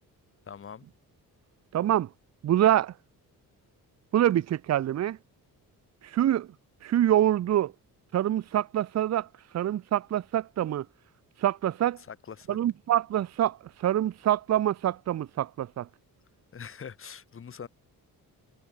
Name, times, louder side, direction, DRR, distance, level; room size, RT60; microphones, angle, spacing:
voice 1, 0.5-0.8 12.1-12.6 16.5-17.7, left 7 dB, 35° left, 3.1 m, -43 dB
voice 2, 1.7-2.1 2.4-2.9 4.1-5.2 6.1-6.5 6.8-7.7 8.1-9.3 9.5-10.8 11.4-12.0 12.5-15.9, right 12 dB, 45° right, 0.7 m, -25 dB
cardioid pair, 170°, 36 cm